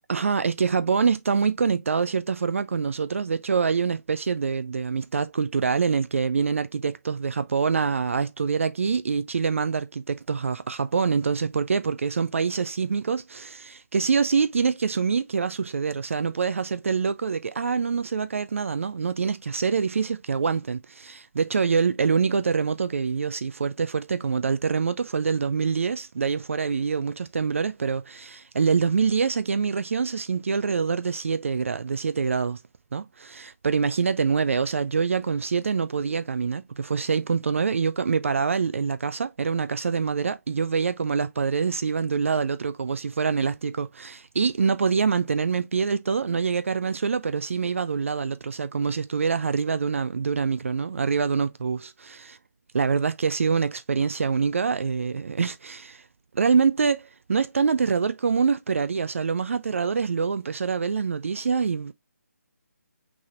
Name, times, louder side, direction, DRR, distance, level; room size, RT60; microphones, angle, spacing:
voice 1, 0.1-32.6 32.9-52.4 52.7-56.0 56.3-61.9, right 5 dB, 50° right, 0.4 m, -25 dB
6.0 x 3.4 x 2.4 m
figure-of-eight pair, 150°, 9 cm